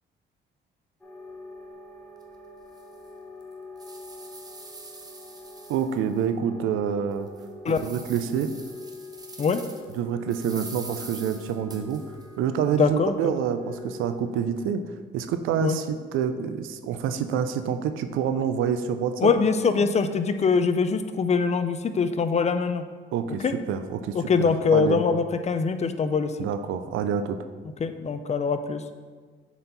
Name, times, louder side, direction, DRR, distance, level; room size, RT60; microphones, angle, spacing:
sound 1, 1.0-14.5, left 2 dB, 5° left, 1.2 m, -44 dB
sound 2, 2.2-2.3 2.8-2.9 3.4-6.2 6.7-6.8 7.3-10.0 10.3-12.2, right 3 dB, 20° right, 0.8 m, -44 dB
voice 1, 5.7-7.3 7.7-8.5 10.0-12.0 12.4-14.8 15.1-19.3 19.7-19.8 23.1-25.0 26.4-27.4, right 8 dB, 90° right, 9 dB, 0.5 m, -27 dB
voice 2, 12.8-13.3 15.6-15.8 19.2-22.8 23.4-23.5 24.1-26.4 27.8-28.8, left 5 dB, 35° left, 9 dB, 0.5 m, -23 dB
7.0 x 4.4 x 4.0 m, 1.5 s
cardioid pair, 90°, 20 cm